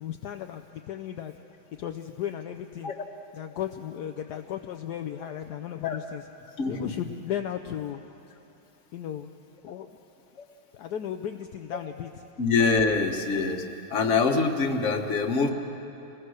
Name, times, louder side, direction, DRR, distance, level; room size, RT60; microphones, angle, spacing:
voice 1, 0.0-1.3 1.8-2.9 3.3-6.3 6.6-8.0 8.9-9.3 9.6-9.9 10.7-12.2, left 10 dB, 70° left, 6 dB, 1.0 m, -35 dB
voice 2, 6.6-6.9 12.4-13.6 13.9-15.5, left 4 dB, 40° left, 4 dB, 1.5 m, -24 dB
27.5 x 20.0 x 6.4 m, 2.9 s
omnidirectional pair, 2.3 m